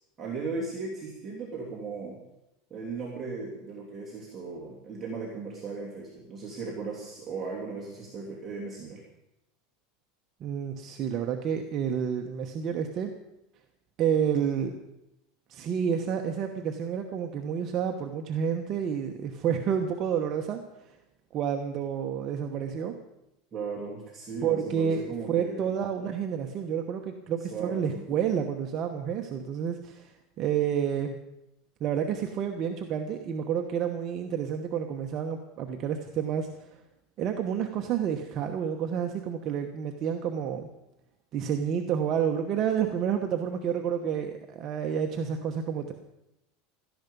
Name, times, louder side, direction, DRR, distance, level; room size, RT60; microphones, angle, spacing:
voice 1, 0.2-2.2 2.7-9.0 23.5-25.7 27.4-28.0, right 4 dB, 20° right, -4 dB, 2.9 m, -37 dB
voice 2, 10.4-13.1 14.0-14.7 15.5-21.0 21.3-23.0 24.4-30.1 30.4-31.1 31.8-36.7 37.2-40.7 41.3-45.9, right 8 dB, 35° right, 4 dB, 1.1 m, -29 dB
16.5 x 13.5 x 5.4 m, 0.87 s
supercardioid pair, 150°, 0 cm